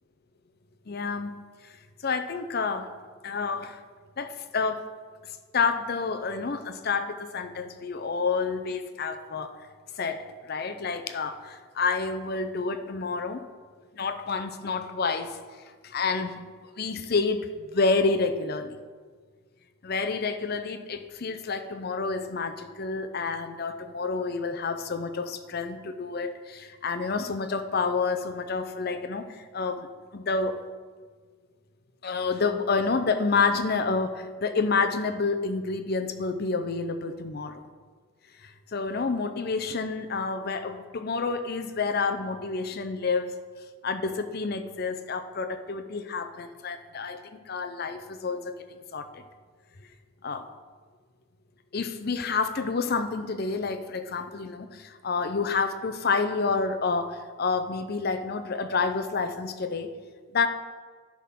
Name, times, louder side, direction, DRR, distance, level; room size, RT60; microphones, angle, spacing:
voice 1, 0.9-1.4 2.0-2.9 3.2-3.8 4.2-4.8 5.5-9.5 10.0-13.4 14.0-15.4 15.8-16.3 16.8-18.8 19.8-29.9 30.1-30.6 32.0-37.6 38.4-43.3 43.8-49.2 50.2-50.5 51.7-59.9 60.3-60.5, left 4 dB, 45° left, 8 dB, 0.5 m, -29 dB
10.0 x 3.7 x 5.8 m, 1.5 s
head